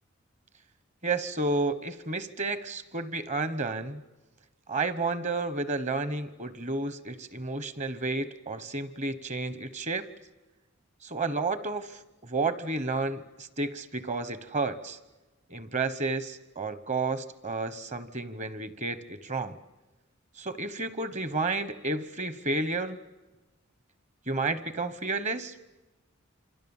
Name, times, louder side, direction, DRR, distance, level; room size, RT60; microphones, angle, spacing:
voice 1, 1.0-4.0 4.7-10.1 11.0-15.0 15.5-19.6 20.4-23.0 24.3-25.5, right 3 dB, 35° right, 14 dB, 1.1 m, -31 dB
27.0 x 26.0 x 7.2 m, 1.1 s
head